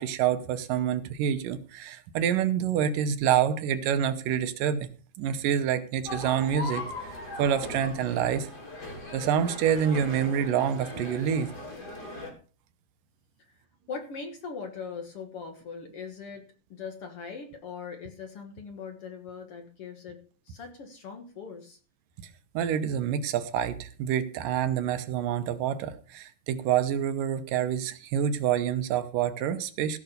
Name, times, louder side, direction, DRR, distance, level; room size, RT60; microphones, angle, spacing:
voice 1, 0.0-4.9 5.2-8.5 9.1-11.5 22.5-30.0, right 9 dB, 75° right, 10 dB, 2.5 m, -27 dB
sound 1, 6.1-12.3, left 2 dB, 30° left, 3.8 m, -39 dB
voice 2, 13.9-16.4 16.7-20.2 20.5-21.8, left 5 dB, 50° left, 5 dB, 1.9 m, -40 dB
16.5 x 6.0 x 6.7 m, 0.39 s
omnidirectional pair, 4.0 m